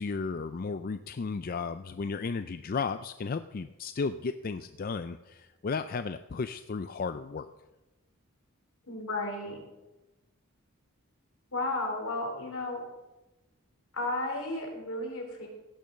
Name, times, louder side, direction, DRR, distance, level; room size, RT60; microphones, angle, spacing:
voice 1, 0.0-7.5, left 4 dB, 40° left, 10 dB, 0.4 m, -34 dB
voice 2, 8.9-9.6 11.5-12.8 13.9-15.5, left 2 dB, 75° left, 1 dB, 3.4 m, -33 dB
16.5 x 6.9 x 6.5 m, 1.0 s
head